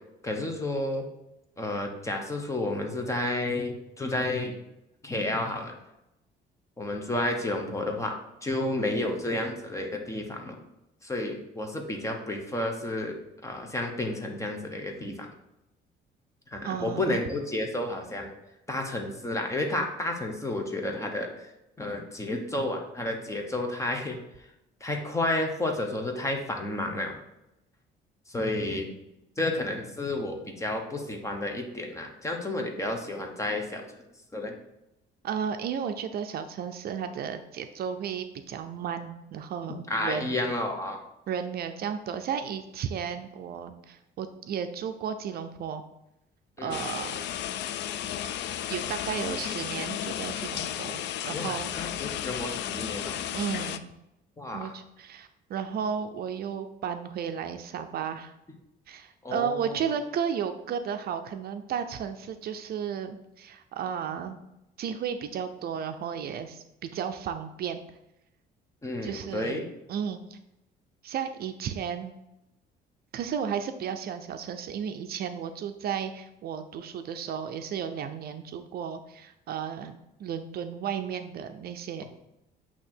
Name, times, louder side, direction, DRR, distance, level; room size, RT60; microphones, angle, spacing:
voice 1, 0.2-1.1 1.6-4.6 5.0-5.8 6.8-8.1 8.4-10.6 11.0-13.1 13.4-15.3 16.5-18.3 18.7-21.5 21.8-24.2 24.8-27.2 28.3-28.9 29.4-33.8 34.3-34.5 39.9-41.0 46.6-46.8 51.3-53.2 54.4-54.7 59.2-59.9 68.8-69.7, left 1 dB, 15° left, 3 dB, 0.9 m, -31 dB
voice 2, 16.6-17.1 35.2-40.4 41.3-45.8 46.6-47.1 48.7-51.7 53.3-53.8 54.5-58.3 58.9-64.4 64.8-67.8 69.0-69.6 69.9-70.4 71.0-72.1 73.1-82.0, right 7 dB, 55° right, 8 dB, 0.5 m, -33 dB
sound 1, 46.7-53.8, left 11 dB, 70° left, 0.4 m, -33 dB
8.3 x 2.9 x 4.4 m, 0.89 s
cardioid pair, 125°, 19 cm